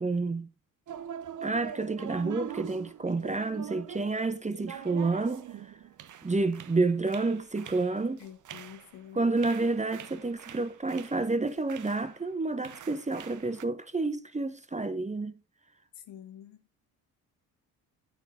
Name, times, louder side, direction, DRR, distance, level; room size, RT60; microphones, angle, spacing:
voice 1, 0.0-0.5 1.4-5.5 6.2-8.2 9.1-15.3, right 3 dB, 15° right, 0.9 m, -29 dB
sound 1, 0.9-12.2 12.5-13.6, right 9 dB, 45° right, 0.8 m, -44 dB
voice 2, 8.2-9.2 16.0-16.6, left 10 dB, 75° left, 1.5 m, -48 dB
9.0 x 5.7 x 3.8 m
hypercardioid pair, 50°, 44 cm